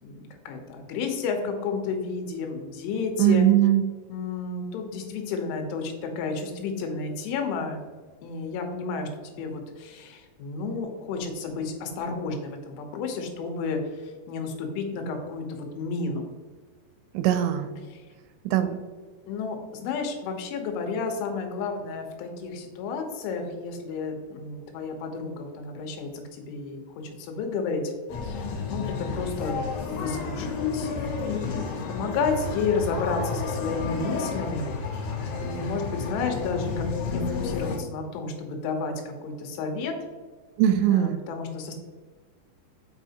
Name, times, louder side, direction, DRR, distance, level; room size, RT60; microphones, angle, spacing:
voice 1, 0.5-3.5 4.1-7.8 8.2-16.3 17.9-18.0 19.3-19.6 19.8-27.8 28.2-29.5 29.9-34.7 34.9-35.1 35.4-39.9 40.9-41.7, left 4 dB, 90° left, 4 dB, 3.4 m, -32 dB
voice 2, 3.2-3.8 17.1-17.7 18.5-18.8 40.6-41.2, right 12 dB, 85° right, 8 dB, 2.8 m, -20 dB
sound 1, 28.1-37.8, left 4 dB, 70° left, 3.1 m, -31 dB
8.1 x 4.9 x 2.8 m, 1.4 s
omnidirectional pair, 5.4 m